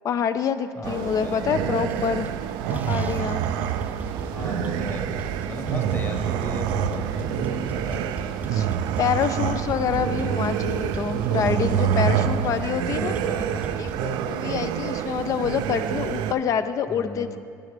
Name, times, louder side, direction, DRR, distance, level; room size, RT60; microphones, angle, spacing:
voice 1, 0.0-2.3 2.7-3.4 8.5-8.7 9.0-13.2 13.8-17.4, left 8 dB, 50° left, 11 dB, 0.4 m, -26 dB
voice 2, 0.8-1.5 4.3-8.3 10.1-10.3 12.9-14.0 16.9-17.4, left 3 dB, 30° left, 3 dB, 1.2 m, -37 dB
sound 1, 0.8-16.3, right 9 dB, 80° right, 0.4 m, -27 dB
sound 2, 1.8-2.4 2.6-13.9, right 3 dB, 20° right, 0.5 m, -37 dB
11.0 x 9.8 x 3.3 m, 2.3 s
cardioid pair, 110°, 7 cm